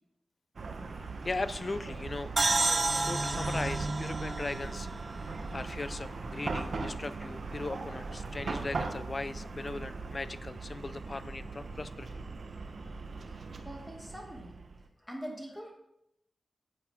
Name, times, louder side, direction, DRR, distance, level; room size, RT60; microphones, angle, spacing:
Chatter / Car passing by / Traffic noise roadway noise, 0.6-14.8, right 3 dB, 65° right, 1.0 m, -39 dB
voice 1, 0.9-2.3 2.8-4.9 5.5-12.1, left 3 dB, 40° left, 14 dB, 0.5 m, -38 dB
sound 1, 2.4-5.9, right 3 dB, 35° right, 0.4 m, -31 dB
voice 2, 13.3-14.6 15.0-15.7, equal, 5° left, 0 dB, 2.3 m, -44 dB
10.5 x 8.2 x 3.6 m, 0.82 s
wide cardioid pair, 75°, 0 cm